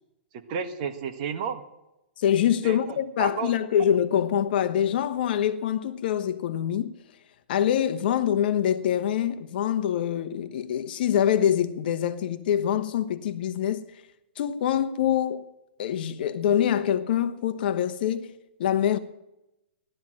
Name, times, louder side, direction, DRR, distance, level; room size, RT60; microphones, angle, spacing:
voice 1, 0.5-1.6 2.6-3.5, right 7 dB, 35° right, 1.5 m, -32 dB
voice 2, 2.2-7.0 7.5-13.9 14.4-15.4 15.8-18.3 18.6-19.0, left 10 dB, 50° left, 1.2 m, -25 dB
16.0 x 12.0 x 7.7 m
hypercardioid pair, 160°, 6 cm